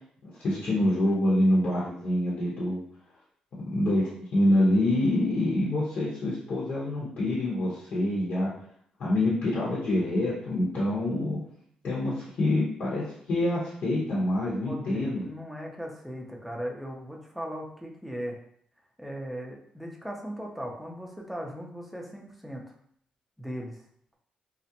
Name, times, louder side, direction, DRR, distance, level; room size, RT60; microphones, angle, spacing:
voice 1, 0.4-2.8 3.7-8.5 9.0-11.4 11.8-15.2, left 1 dB, 65° left, -7 dB, 0.9 m, -26 dB
voice 2, 14.6-18.4 19.0-22.7 23.4-23.8, equal, ahead, 0 dB, 0.6 m, -38 dB
2.4 x 2.0 x 2.8 m, 0.65 s
cardioid pair, 70°, 2 cm